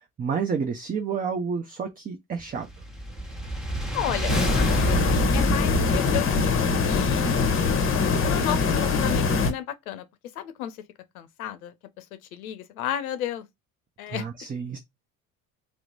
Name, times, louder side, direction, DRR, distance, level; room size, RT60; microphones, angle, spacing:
voice 1, 0.2-2.7 14.1-14.8, right 6 dB, 20° right, 0.5 m, -29 dB
sound 1, 2.5-8.0, right 1 dB, ahead, 1.0 m, -29 dB
voice 2, 3.9-6.6 6.8-7.3 8.2-10.1 10.4-10.8 11.1-12.1 12.3-13.5 14.0-14.3, left 11 dB, 85° left, 0.6 m, -33 dB
sound 2, 4.3-9.5, left 4 dB, 30° left, 0.8 m, -23 dB
2.9 x 2.0 x 3.8 m
hypercardioid pair, 70°, 42 cm